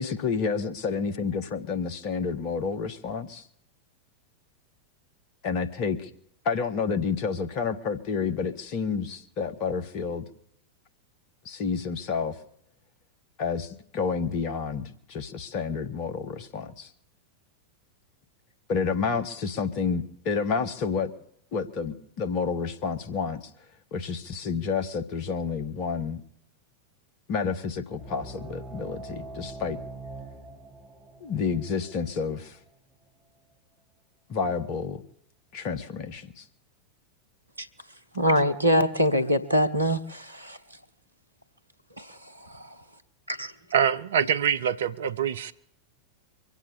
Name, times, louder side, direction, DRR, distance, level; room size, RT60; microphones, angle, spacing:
voice 1, 0.0-3.5 5.4-6.1 6.4-10.2 11.4-12.4 13.4-16.9 18.7-21.1 21.5-23.5 23.9-26.2 27.3-29.8 31.2-32.6 34.3-35.0 35.5-36.4, left 5 dB, 45° left, 1.5 m, -29 dB
sound 1, 27.9-33.1, right 2 dB, 20° right, 7.6 m, -43 dB
voice 2, 38.1-40.6 42.0-42.7 43.3-43.5, equal, 85° right, 1.1 m, -24 dB
voice 3, 43.7-45.5, right 8 dB, 60° right, 0.7 m, -24 dB
23.5 x 8.2 x 6.9 m
figure-of-eight pair, 90°, 0 cm